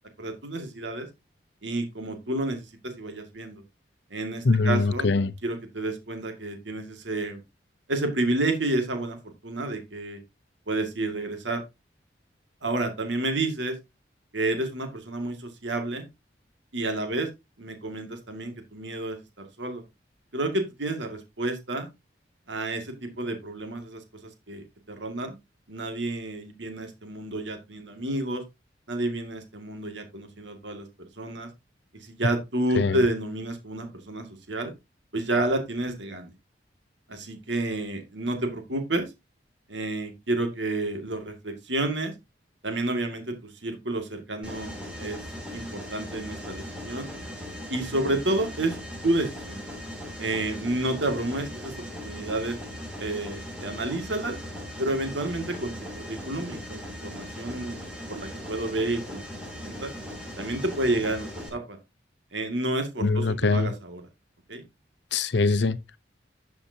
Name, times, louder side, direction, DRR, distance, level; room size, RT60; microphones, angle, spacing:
voice 1, 0.2-1.1 1.6-3.6 4.1-5.1 5.4-7.4 7.9-10.2 10.7-11.6 12.6-13.8 14.3-16.1 16.7-17.3 17.6-19.8 20.3-21.9 22.5-25.4 25.7-28.4 28.9-31.5 32.0-34.7 35.1-36.3 37.1-39.1 39.7-42.1 42.6-45.2 45.5-47.1 47.7-48.8 49.0-49.6 50.2-52.6 53.0-54.4 54.8-59.9 60.4-61.8 62.3-64.0 64.5-64.6, right 2 dB, 85° right, 2.1 m, -30 dB
voice 2, 4.4-5.3 32.7-33.0 63.0-63.7 65.1-66.0, left 3 dB, 75° left, 0.7 m, -23 dB
Mechanisms, 44.4-61.5, equal, 5° right, 3.3 m, -39 dB
11.5 x 7.0 x 2.8 m
head